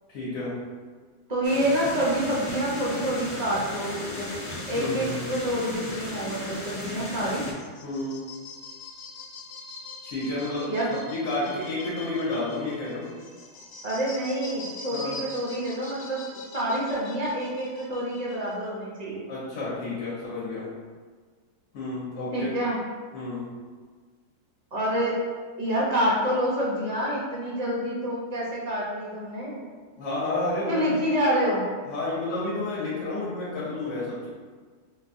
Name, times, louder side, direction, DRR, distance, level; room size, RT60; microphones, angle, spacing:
voice 1, 0.1-0.6 4.7-5.2 7.8-8.3 10.0-10.7 11.1-13.1 14.9-15.2 19.3-20.7 21.7-22.5 23.1-23.5 30.0-30.8 31.9-34.3, left 2 dB, 55° left, -7 dB, 1.1 m, -30 dB
voice 2, 1.3-4.3 4.7-7.4 10.7-10.9 13.8-16.2 16.5-19.2 22.3-22.8 24.7-25.2 25.6-29.6 30.7-31.6, equal, 55° right, -6 dB, 0.4 m, -27 dB
sound 1, 1.4-7.5, left 1 dB, 30° left, 0.8 m, -36 dB
sound 2, 7.6-18.7, left 2 dB, 85° left, 1.3 m, -43 dB
4.9 x 2.3 x 2.6 m, 1.5 s
omnidirectional pair, 1.7 m